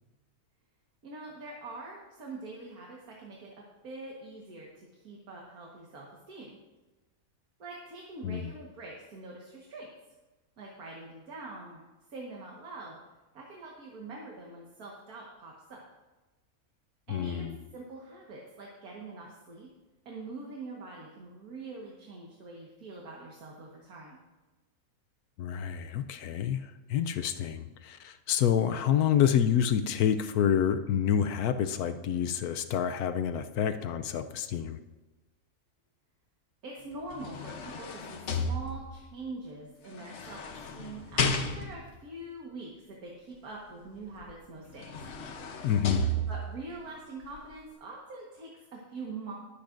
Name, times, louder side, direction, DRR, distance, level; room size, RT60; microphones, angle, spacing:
voice 1, 1.0-3.5 3.8-6.6 7.6-9.9 10.6-11.8 12.1-13.0 13.3-15.8 17.1-19.7 20.1-24.2 36.6-40.4 40.7-44.8 46.3-49.3, right 3 dB, 80° right, -2 dB, 2.0 m, -44 dB
voice 2, 17.1-17.6 25.4-34.8 45.6-46.1, left 9 dB, 90° left, 9 dB, 1.1 m, -28 dB
sound 1, 36.9-39.1 40.0-42.0 44.2-44.3 44.7-46.7 47.2-47.4, left 1 dB, 55° left, 1.1 m, -33 dB
22.0 x 8.5 x 2.6 m, 1.1 s
omnidirectional pair, 1.6 m